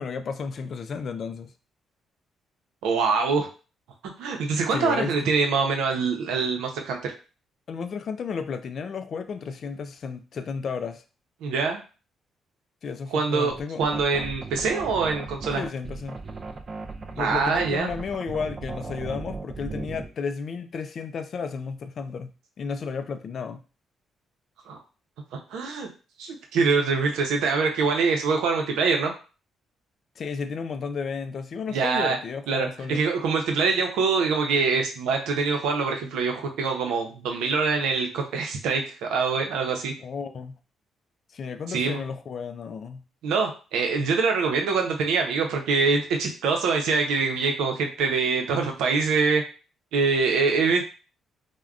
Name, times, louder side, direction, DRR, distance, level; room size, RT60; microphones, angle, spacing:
voice 1, 0.0-1.5 4.7-5.3 7.7-11.0 12.8-13.9 15.6-16.2 17.2-22.3 22.6-23.6 30.2-33.0 40.0-40.6 41.3-43.0, left 5 dB, 55° left, 9 dB, 0.3 m, -33 dB
voice 2, 2.8-3.5 4.2-7.1 11.4-11.8 13.1-15.6 17.2-17.9 24.7-24.8 25.5-25.9 26.2-29.1 31.7-32.2 32.5-39.9 41.7-42.0 43.2-49.4 49.9-50.8, right 4 dB, 90° right, 3 dB, 0.6 m, -24 dB
sound 1, 13.5-20.1, right 3 dB, 40° right, 0.4 m, -37 dB
3.4 x 2.1 x 2.4 m, 0.34 s
cardioid pair, 90°, 0 cm